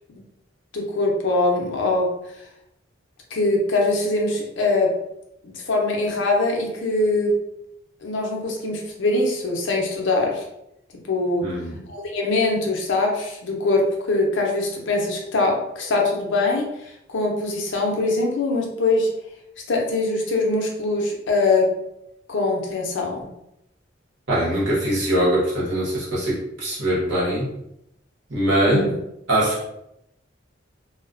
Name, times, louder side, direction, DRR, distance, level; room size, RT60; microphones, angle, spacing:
voice 1, 0.7-2.1 3.3-4.9 5.4-7.3 8.0-10.4 11.1-11.4 11.9-13.8 14.1-16.6 17.1-19.1 19.7-21.6 22.3-23.3 28.7-28.8, left 2 dB, 70° left, 0 dB, 0.6 m, -22 dB
voice 2, 11.4-11.8 24.3-27.5 28.3-28.8 29.3-29.7, right 1 dB, 75° right, -6 dB, 1.0 m, -22 dB
2.3 x 2.2 x 2.4 m, 0.81 s
head